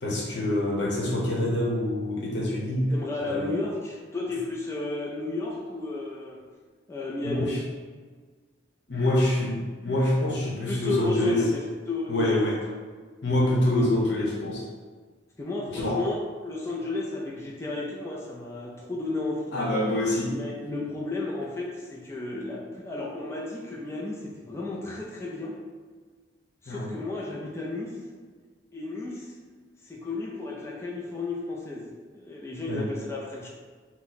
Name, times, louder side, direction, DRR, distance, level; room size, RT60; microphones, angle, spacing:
voice 1, 0.0-2.9 3.3-3.5 7.2-7.6 8.9-11.4 12.1-12.6 13.2-14.6 15.7-16.0 19.5-20.4 26.7-27.0 32.7-32.8, left 1 dB, 65° left, -4 dB, 0.8 m, -26 dB
voice 2, 2.9-6.4 6.9-7.5 10.7-12.4 15.4-16.2 16.4-19.5 20.3-25.6 26.6-28.0 28.7-29.4 29.8-33.5, left 2 dB, 15° left, -4 dB, 0.3 m, -33 dB
2.8 x 2.1 x 3.9 m, 1.5 s
head